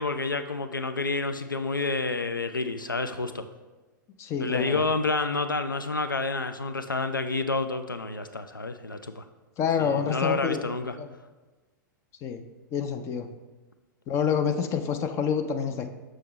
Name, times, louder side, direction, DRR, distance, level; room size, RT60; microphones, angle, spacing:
voice 1, 0.0-3.5 4.4-9.2 9.8-11.0, left 3 dB, 85° left, 9 dB, 0.4 m, -29 dB
voice 2, 4.2-4.8 9.6-10.6 11.0-11.1 12.2-12.4 12.7-13.3 14.1-15.9, left 7 dB, 25° left, 7 dB, 0.5 m, -27 dB
6.6 x 6.1 x 3.1 m, 1.2 s
figure-of-eight pair, 100°, 11 cm